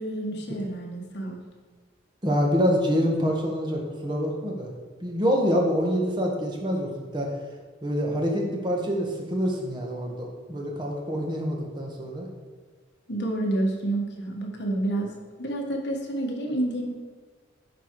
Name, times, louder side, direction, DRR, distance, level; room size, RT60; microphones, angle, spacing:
voice 1, 0.0-1.4 13.1-16.9, right 1 dB, 55° left, 1 dB, 1.4 m, -29 dB
voice 2, 2.2-4.7 5.0-7.3 7.8-12.3, equal, 25° right, 0 dB, 1.4 m, -26 dB
11.0 x 4.6 x 4.7 m, 1.5 s
head